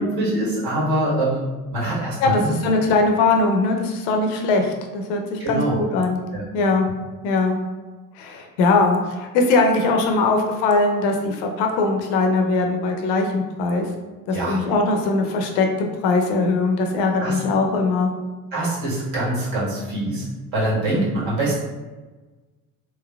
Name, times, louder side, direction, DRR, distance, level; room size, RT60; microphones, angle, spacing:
voice 1, 0.0-1.4 1.7-2.5 5.4-5.8 6.3-6.4 14.3-14.6 17.2-17.4 18.5-21.6, right 1 dB, 55° right, -6 dB, 1.5 m, -24 dB
voice 2, 2.2-6.2 6.5-6.9 7.2-7.6 8.2-13.9 14.3-18.1, left 3 dB, 60° left, 3 dB, 0.6 m, -20 dB
3.1 x 3.1 x 2.2 m, 1.2 s
figure-of-eight pair, 60°, 43 cm